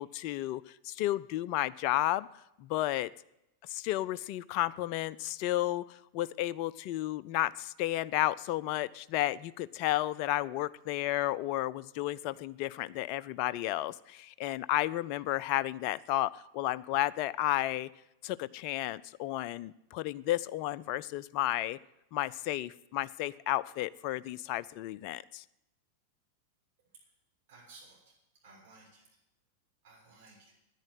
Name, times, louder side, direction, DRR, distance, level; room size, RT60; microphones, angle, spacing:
voice 1, 0.0-2.3 2.6-3.1 3.7-5.8 6.1-17.9 18.2-21.8 22.1-25.4, left 15 dB, 45° left, 18 dB, 0.4 m, -32 dB
voice 2, 27.5-28.1 28.4-29.1 29.8-30.5, right 3 dB, 55° right, -3 dB, 6.7 m, -56 dB
10.5 x 9.9 x 7.9 m, 0.88 s
figure-of-eight pair, 90°, 0 cm